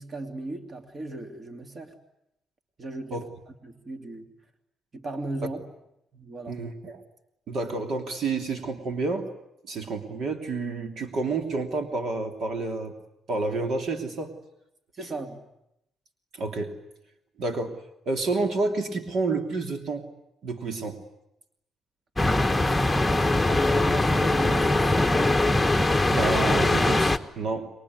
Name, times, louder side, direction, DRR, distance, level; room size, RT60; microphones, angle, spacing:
voice 1, 0.0-1.9 2.8-3.2 3.5-4.3 4.9-5.6 6.1-6.6 14.9-15.4 23.5-25.0, right 2 dB, 40° right, 6 dB, 3.1 m, -36 dB
voice 2, 6.5-7.0 7.5-9.3 9.6-12.9 13.3-14.3 16.3-16.7 17.4-17.8 18.0-20.1 20.4-21.0 26.1-27.7, right 3 dB, 65° right, 5 dB, 3.0 m, -29 dB
sound 1, 22.2-27.2, left 2 dB, 10° left, 1.3 m, -22 dB
27.0 x 22.5 x 9.6 m, 0.83 s
cardioid pair, 90°, 0 cm